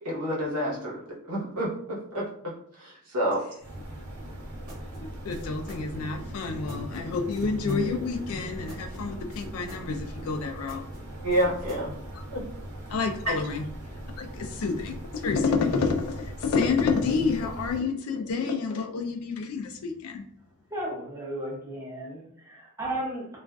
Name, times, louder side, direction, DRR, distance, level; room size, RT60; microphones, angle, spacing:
voice 1, 0.0-2.3 2.8-3.4 11.2-11.9 12.3-12.4 13.3-13.4, equal, 85° right, -5 dB, 1.0 m, -28 dB
sound 1, 3.6-17.8, right 1 dB, 70° right, 0.6 m, -40 dB
sound 2, 4.2-12.0, right 1 dB, 40° right, 0.8 m, -46 dB
voice 2, 5.0-10.8 12.9-13.7 14.2-20.2, left 4 dB, 70° left, 4 dB, 0.4 m, -29 dB
voice 3, 20.7-23.3, right 1 dB, 10° right, -3 dB, 0.6 m, -34 dB
2.4 x 2.4 x 2.2 m, 0.65 s
head